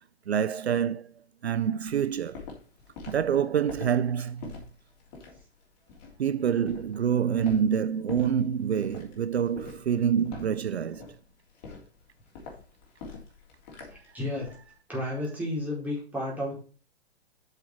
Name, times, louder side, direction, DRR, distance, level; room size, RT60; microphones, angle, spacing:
voice 1, 0.3-1.1 1.4-2.5 3.1-4.6 6.2-11.1, right 8 dB, 75° right, 0.5 m, -27 dB
Walk footsteps, 1.9-14.6, left 4 dB, 40° left, 3.4 m, -45 dB
voice 2, 13.9-14.5 14.9-16.5, left 1 dB, 5° right, 4.4 m, -32 dB
8.0 x 6.6 x 4.6 m
figure-of-eight pair, 115°, 33 cm